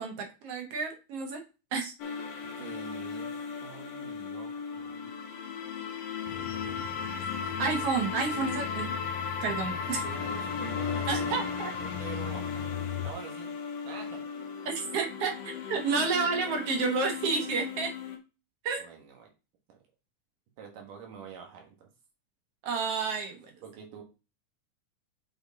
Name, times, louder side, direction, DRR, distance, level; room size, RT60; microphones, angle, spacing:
voice 1, 0.0-1.4 1.7-1.9 7.6-8.9 9.4-10.0 11.1-11.7 14.7-17.9 18.6-18.9 22.6-23.5, right 5 dB, 60° right, 4 dB, 1.8 m, -30 dB
sound 1, 2.0-18.2, left 6 dB, 65° left, 2.0 m, -36 dB
voice 2, 2.6-3.3 3.6-5.1 6.4-7.0 7.4-7.8 10.0-12.6 13.0-13.5 13.8-14.2 18.8-19.3 19.7-19.8 20.6-21.9 23.6-24.0, right 6 dB, 90° right, 2 dB, 3.2 m, -46 dB
sound 2, 6.3-13.1, left 12 dB, 85° left, 2.0 m, -39 dB
7.7 x 4.3 x 3.6 m, 0.29 s
omnidirectional pair, 3.6 m